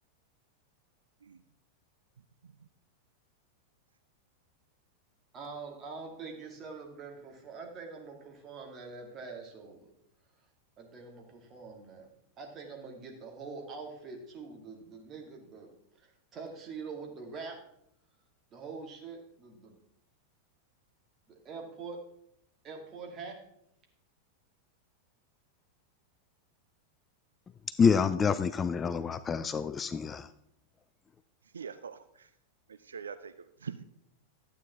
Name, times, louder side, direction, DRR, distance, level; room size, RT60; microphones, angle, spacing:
voice 1, 5.3-9.9 10.8-12.1 12.4-17.6 18.5-19.8 21.3-22.0 22.6-23.4, right 4 dB, 30° right, 1 dB, 2.1 m, -44 dB
voice 2, 27.8-30.3, left 6 dB, 20° left, 14 dB, 0.3 m, -27 dB
voice 3, 31.5-32.3 32.7-33.8, right 6 dB, 70° right, 12 dB, 0.4 m, -43 dB
12.0 x 8.6 x 3.5 m, 0.75 s
figure-of-eight pair, 90°, 0 cm